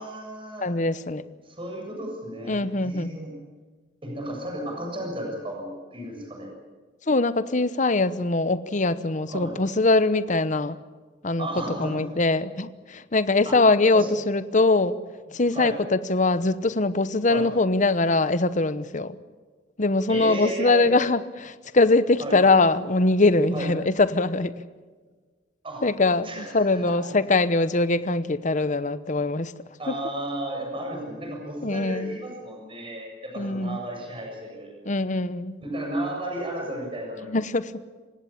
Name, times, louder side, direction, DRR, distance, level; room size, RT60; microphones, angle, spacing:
voice 1, 0.0-0.7 1.4-3.3 4.0-6.5 9.3-9.5 11.4-12.1 13.5-13.6 13.9-14.1 15.5-15.8 17.3-17.4 20.1-20.9 22.2-22.4 23.5-23.7 25.6-25.8 26.2-27.0 29.8-34.7 35.6-37.4, right 1 dB, 30° right, 0 dB, 7.3 m, -34 dB
voice 2, 0.6-1.2 2.5-3.1 7.1-10.8 11.2-11.5 11.8-15.0 15.3-19.2 19.8-24.5 25.8-29.5 29.9-30.0 31.6-32.2 33.4-33.8 34.9-35.6 37.3-37.7, left 3 dB, 40° left, 15 dB, 1.0 m, -22 dB
27.5 x 17.0 x 8.6 m, 1.4 s
head